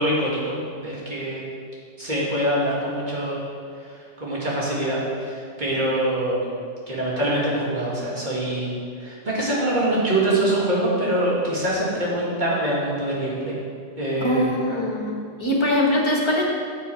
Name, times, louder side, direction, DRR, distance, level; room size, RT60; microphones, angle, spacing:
voice 1, 0.0-1.4 2.0-3.5 3.8-6.4 6.9-8.7 9.0-13.6 14.0-14.5, right 1 dB, 40° right, -6 dB, 2.0 m, -24 dB
voice 2, 14.2-16.4, left 1 dB, 25° left, -2 dB, 1.2 m, -22 dB
7.2 x 6.3 x 4.5 m, 2.2 s
omnidirectional pair, 1.2 m